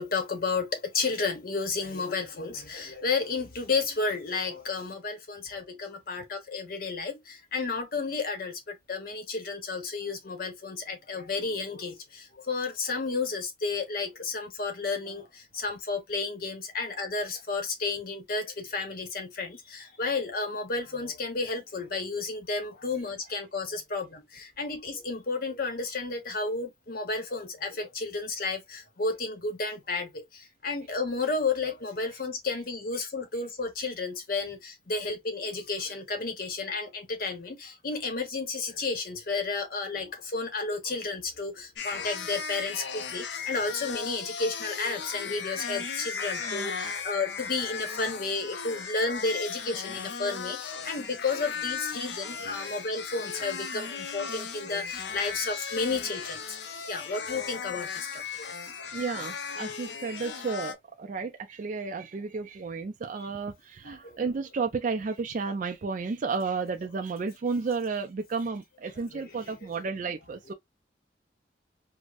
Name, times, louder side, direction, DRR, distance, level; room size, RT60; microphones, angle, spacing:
voice 1, 0.0-56.6 56.9-58.9 63.8-64.3 69.0-69.7, left 3 dB, 55° left, 0.9 m, -32 dB
sound 1, 41.8-60.7, left 6 dB, 75° left, 0.5 m, -36 dB
voice 2, 58.9-70.5, right 4 dB, 45° right, 0.4 m, -32 dB
4.8 x 2.0 x 2.4 m
head